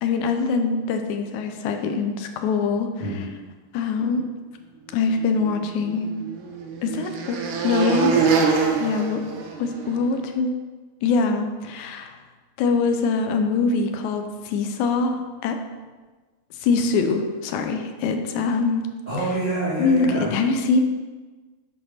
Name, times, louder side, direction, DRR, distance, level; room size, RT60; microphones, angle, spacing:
voice 1, 0.0-2.9 3.7-4.3 4.9-6.2 6.8-7.4 7.6-8.3 8.8-9.2 9.6-10.5 11.0-12.2 12.6-15.6 16.6-18.8 19.8-20.8, left 4 dB, 80° left, 6 dB, 1.8 m, -23 dB
sound 1, 5.4-10.1, right 5 dB, 70° right, 2.3 m, -24 dB
voice 2, 19.0-20.3, right 2 dB, 20° right, -12 dB, 1.1 m, -26 dB
7.5 x 4.3 x 5.7 m, 1.3 s
omnidirectional pair, 3.9 m